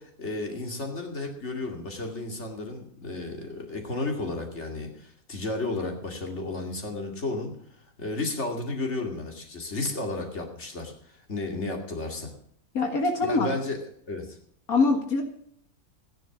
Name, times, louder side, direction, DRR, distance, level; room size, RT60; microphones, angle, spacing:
voice 1, 0.0-7.5 8.0-12.3 13.2-13.8 14.1-14.4, left 2 dB, 50° left, 3 dB, 2.7 m, -33 dB
voice 2, 12.7-13.5 14.7-15.2, left 3 dB, 85° left, 4 dB, 2.1 m, -23 dB
14.0 x 10.5 x 6.0 m, 0.63 s
omnidirectional pair, 1.5 m